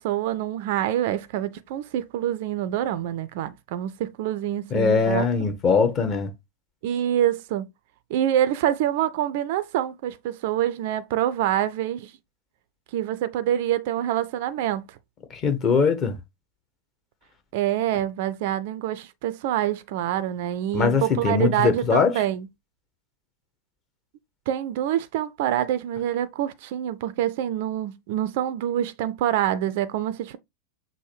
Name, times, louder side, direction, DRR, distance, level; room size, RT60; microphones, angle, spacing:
voice 1, 0.0-5.3 6.8-7.7 8.1-12.1 12.9-14.8 17.5-22.5 24.5-30.4, right 11 dB, 50° right, 0.3 m, -26 dB
voice 2, 4.7-6.3 15.3-16.2 20.7-22.2, left 5 dB, 30° left, 1.0 m, -21 dB
6.2 x 2.6 x 3.1 m
figure-of-eight pair, 90°, 0 cm